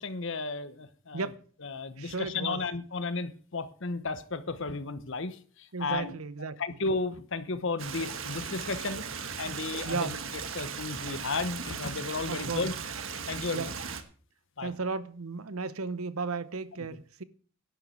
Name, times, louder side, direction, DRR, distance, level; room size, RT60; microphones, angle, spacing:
voice 1, 0.0-1.3 1.6-6.1 6.6-9.0 9.4-10.2 10.5-12.7 13.3-13.7 14.6-14.7, left 3 dB, 60° left, 1.0 m, -33 dB
voice 2, 2.0-2.6 5.7-6.8 9.8-10.2 12.3-12.8 13.5-13.7 14.6-17.2, right 4 dB, 90° right, 0.9 m, -35 dB
Stream, 7.8-14.0, right 6 dB, 65° right, 1.4 m, -37 dB
11.5 x 6.8 x 7.7 m
head